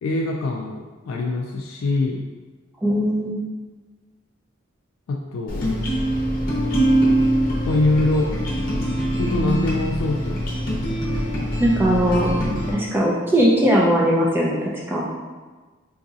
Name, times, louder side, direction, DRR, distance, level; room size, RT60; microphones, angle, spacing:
voice 1, 0.0-2.2 5.1-5.8 7.7-8.3 9.2-10.4, left 2 dB, 90° left, -1 dB, 0.3 m, -23 dB
voice 2, 2.8-3.4 11.6-12.3 12.7-15.1, equal, 10° right, -4 dB, 0.4 m, -19 dB
sound 1, 5.5-12.7, right 1 dB, 45° left, 0.7 m, -23 dB
3.9 x 2.7 x 2.4 m, 1.4 s
head